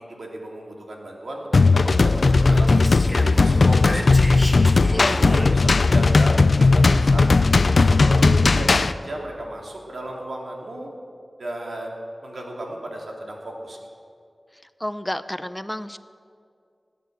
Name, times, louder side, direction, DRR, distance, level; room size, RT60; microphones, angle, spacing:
voice 1, 0.0-2.8 3.2-4.4 4.8-7.3 7.9-10.9 11.4-13.8, right 1 dB, 85° right, -1 dB, 2.7 m, -34 dB
sound 1, 1.5-8.9, left 3 dB, 75° left, 0.5 m, -17 dB
Speech, 2.1-6.0, equal, 15° right, 2.0 m, -34 dB
voice 2, 4.8-5.3 14.8-16.0, left 1 dB, 15° left, 13 dB, 0.6 m, -31 dB
18.0 x 9.2 x 7.9 m, 2.3 s
cardioid pair, 45°, 0 cm